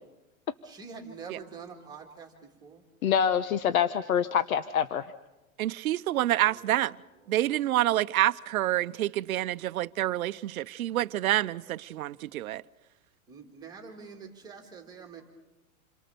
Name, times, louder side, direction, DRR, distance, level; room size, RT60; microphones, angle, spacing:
voice 1, 0.6-2.8 6.4-6.8 7.2-7.7 13.3-15.2, right 5 dB, 10° right, 1.9 m, -46 dB
voice 2, 3.0-5.0, left 8 dB, 80° left, 1.2 m, -25 dB
voice 3, 5.6-6.9 7.3-12.6, right 14 dB, 85° right, 0.8 m, -27 dB
28.0 x 23.0 x 6.9 m
supercardioid pair, 175°, 42 cm